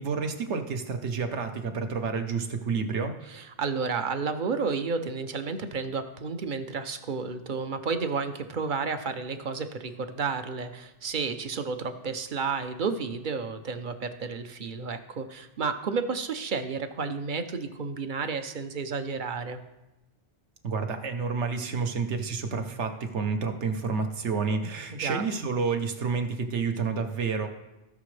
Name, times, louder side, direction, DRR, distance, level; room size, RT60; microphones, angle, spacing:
voice 1, 0.0-3.1 20.6-27.5, right 5 dB, 70° right, 6 dB, 1.2 m, -29 dB
voice 2, 3.3-19.6 24.9-25.2, right 5 dB, 50° right, 9 dB, 0.8 m, -31 dB
17.0 x 6.1 x 3.3 m, 0.96 s
omnidirectional pair, 1.2 m